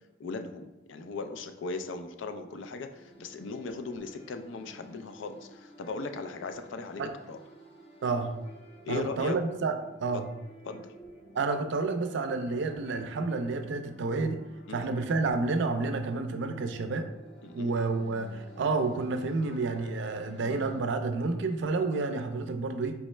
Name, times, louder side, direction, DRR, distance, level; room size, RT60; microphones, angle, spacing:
voice 1, 0.2-7.0 7.3-7.4 8.8-9.3 10.7-10.9 14.7-14.9 17.4-17.7, left 4 dB, 70° left, 7 dB, 0.4 m, -38 dB
sound 1, 2.9-20.8, right 1 dB, 30° left, 1.0 m, -51 dB
voice 2, 8.0-8.3 8.9-10.2 11.3-14.4 14.7-17.1 17.5-23.0, right 3 dB, 65° right, 7 dB, 0.4 m, -30 dB
4.7 x 3.1 x 3.2 m, 1.0 s
head